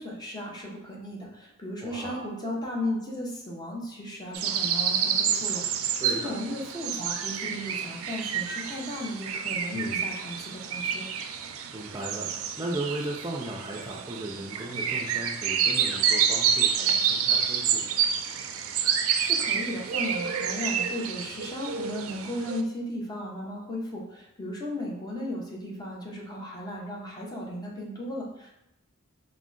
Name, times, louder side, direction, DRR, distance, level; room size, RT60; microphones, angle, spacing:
voice 1, 0.0-11.1 19.1-28.5, left 1 dB, 20° left, -3 dB, 0.7 m, -35 dB
voice 2, 1.8-2.3 6.0-6.3 9.7-10.1 11.7-12.3 12.6-18.0, right 1 dB, 20° right, -2 dB, 0.4 m, -36 dB
sound 1, 4.3-22.6, right 7 dB, 85° right, 0.4 m, -28 dB
3.6 x 2.1 x 3.7 m, 0.89 s
head